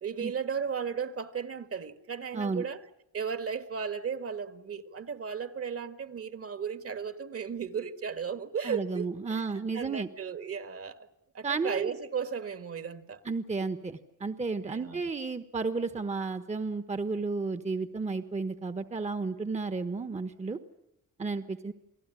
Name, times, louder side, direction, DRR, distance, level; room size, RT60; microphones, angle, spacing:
voice 1, 0.0-2.8 3.1-11.1 11.3-13.2 14.7-15.0, right 6 dB, 45° right, 1.8 m, -35 dB
voice 2, 2.3-2.6 8.6-10.1 11.4-11.9 13.2-20.6 21.2-21.7, right 4 dB, 20° right, 1.2 m, -32 dB
29.0 x 18.5 x 9.8 m
cardioid pair, 125°, 31 cm